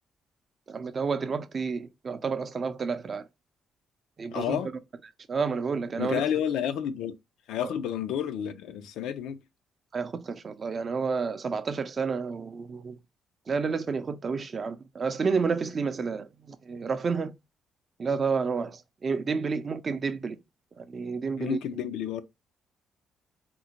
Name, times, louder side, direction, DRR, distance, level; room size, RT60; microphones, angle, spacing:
voice 1, 0.7-3.2 4.2-4.7 5.3-6.2 7.6-7.7 9.9-13.0 13.5-17.3 18.0-20.4 20.8-21.6, right 5 dB, 40° right, 0.4 m, -30 dB
voice 2, 4.3-4.7 6.0-7.2 7.5-9.4 21.4-22.2, left 9 dB, 90° left, 0.4 m, -30 dB
3.7 x 2.0 x 2.9 m
cardioid pair, 90°, 0 cm